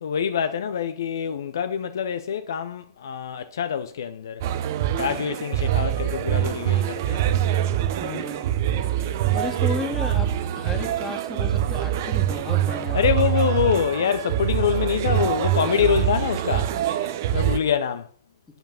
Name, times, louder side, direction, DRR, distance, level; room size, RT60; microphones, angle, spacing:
voice 1, 0.0-4.4 5.0-7.2 12.9-16.7 17.3-18.1, left 7 dB, 65° left, 0.6 m, -25 dB
sound 1, 4.4-17.6, right 11 dB, 50° right, 0.8 m, -24 dB
voice 2, 8.0-8.4 9.3-10.3 10.5-13.2, left 4 dB, 15° left, 2.0 m, -33 dB
7.9 x 6.9 x 5.6 m
figure-of-eight pair, 105°, 2 cm